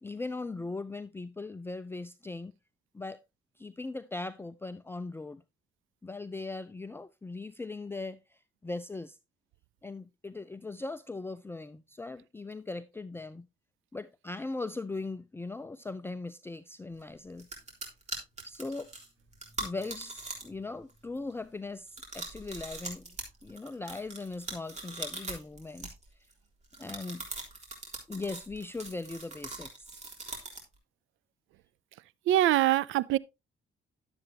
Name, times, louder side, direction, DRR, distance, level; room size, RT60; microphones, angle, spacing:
voice 1, 0.0-2.5 2.9-3.2 3.6-5.4 6.0-9.2 9.8-13.4 13.9-17.5 18.4-18.9 19.6-23.2 23.4-25.9 26.8-27.2 28.1-30.0, left 3 dB, 10° left, 0.5 m, -39 dB
sound 1, 17.0-17.1 17.4-20.6 20.9-21.3 21.9-26.3 26.7-30.7, right 3 dB, 35° right, 3.6 m, -41 dB
voice 2, 32.3-33.2, right 14 dB, 80° right, 0.4 m, -24 dB
11.5 x 7.8 x 2.8 m
cardioid pair, 90°, 20 cm